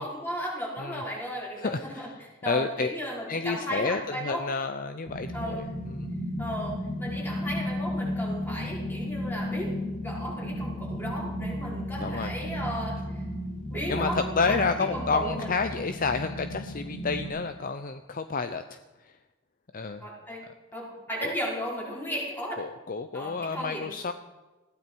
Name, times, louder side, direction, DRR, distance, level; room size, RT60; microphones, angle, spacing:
voice 1, 0.0-2.1 2.4-4.4 5.3-5.6 6.4-9.7 10.0-13.2 13.7-15.5 20.0-20.4 20.7-22.6 23.1-23.9, equal, 10° left, -4 dB, 4.7 m, -35 dB
voice 2, 1.6-2.1 2.4-2.9 3.3-6.2 12.0-12.3 13.9-19.2 19.7-20.0 21.2-21.3 22.6-24.1, left 4 dB, 40° left, 9 dB, 0.7 m, -30 dB
sound 1, 5.1-17.3, equal, 70° left, 5.1 m, -34 dB
20.5 x 15.5 x 4.6 m, 1.1 s
head